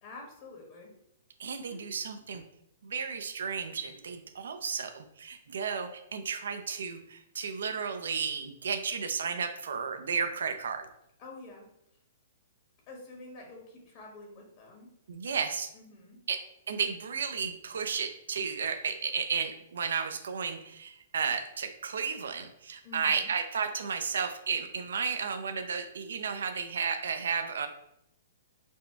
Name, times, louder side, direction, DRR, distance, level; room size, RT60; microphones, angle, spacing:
voice 1, 0.0-0.9 1.7-1.8 11.2-11.7 12.9-14.9 15.7-16.2 22.8-23.3, left 3 dB, 40° left, 0 dB, 1.2 m, -48 dB
voice 2, 1.4-2.4 2.8-10.9 15.1-15.7 16.3-16.4 16.7-27.7, right 6 dB, 80° right, 7 dB, 0.4 m, -33 dB
4.2 x 2.2 x 4.4 m, 0.79 s
hypercardioid pair, 140°, 0 cm